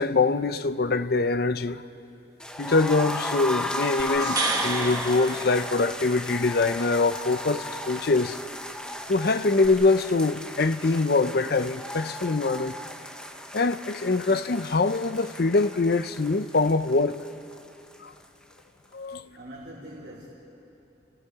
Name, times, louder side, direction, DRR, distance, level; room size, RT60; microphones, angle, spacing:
voice 1, 0.0-1.8 2.6-8.4 9.1-12.7 13.5-17.2 18.0-18.1 18.9-19.3, left 3 dB, 60° left, 0.7 m, -24 dB
sound 1, 2.4-18.2 18.5-18.6 18.9-19.0, left 1 dB, 5° left, 1.0 m, -35 dB
sound 2, 4.0-6.3 9.6-9.7, right 3 dB, 25° right, 2.0 m, -31 dB
voice 2, 19.0-20.3, right 1 dB, 60° right, 3.7 m, -44 dB
30.0 x 27.5 x 4.8 m
head